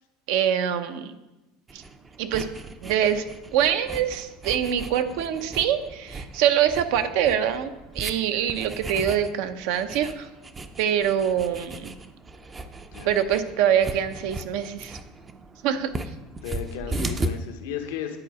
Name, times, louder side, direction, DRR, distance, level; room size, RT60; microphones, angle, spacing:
voice 1, 0.3-1.1 1.7-1.8 2.2-2.5 2.8-3.2 3.5-10.3 10.8-11.9 13.0-15.0 15.6-15.9, right 9 dB, 70° right, 9 dB, 0.7 m, -24 dB
sound 1, 1.7-17.3, right 2 dB, 20° right, 0.5 m, -37 dB
voice 2, 12.9-13.3 16.4-18.2, left 9 dB, 85° left, 5 dB, 1.0 m, -35 dB
9.8 x 4.1 x 4.8 m, 1.0 s
supercardioid pair, 130°, 0 cm